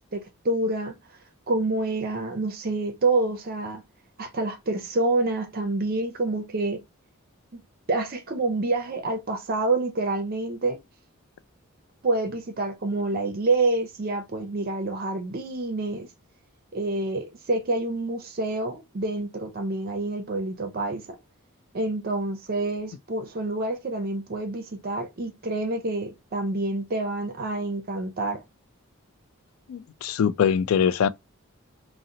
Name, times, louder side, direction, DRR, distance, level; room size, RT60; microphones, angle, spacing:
voice 1, 0.1-1.0 1.5-3.8 4.2-6.8 7.5-7.6 7.9-10.8 12.0-16.1 16.7-21.2 21.7-28.4, right 2 dB, 45° right, 0.5 m, -27 dB
voice 2, 29.7-31.1, left 7 dB, 70° left, 0.3 m, -23 dB
2.8 x 2.0 x 3.7 m
head